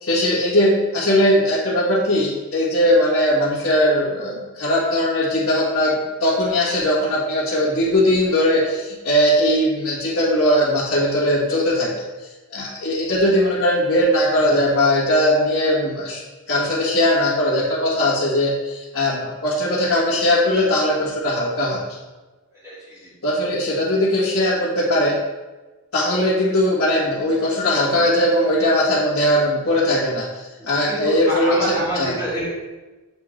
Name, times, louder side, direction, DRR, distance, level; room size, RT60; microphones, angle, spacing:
voice 1, 0.0-5.9 6.2-11.9 12.5-16.2 16.5-21.8 23.2-25.2 25.9-32.1, left 1 dB, 70° left, -9 dB, 1.6 m, -19 dB
voice 2, 22.5-23.1 30.6-32.5, right 1 dB, 15° right, -15 dB, 2.0 m, -27 dB
7.9 x 3.8 x 3.2 m, 1.2 s
head